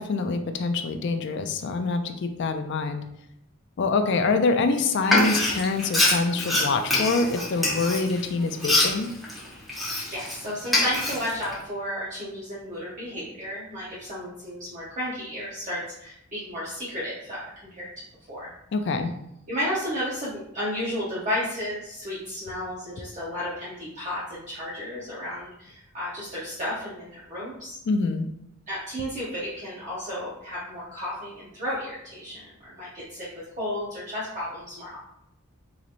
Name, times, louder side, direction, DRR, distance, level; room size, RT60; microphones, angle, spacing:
voice 1, 0.0-3.0 3.8-9.1 18.7-19.1 27.9-28.3, left 3 dB, 60° left, 7 dB, 0.4 m, -25 dB
Frying (food), 5.0-10.4 10.7-11.5, left 2 dB, ahead, 0.8 m, -25 dB
voice 2, 10.1-17.5 17.7-18.5 19.5-27.8 28.7-33.3 33.6-35.0, equal, 35° right, -9 dB, 0.9 m, -33 dB
3.9 x 3.1 x 2.5 m, 0.78 s
head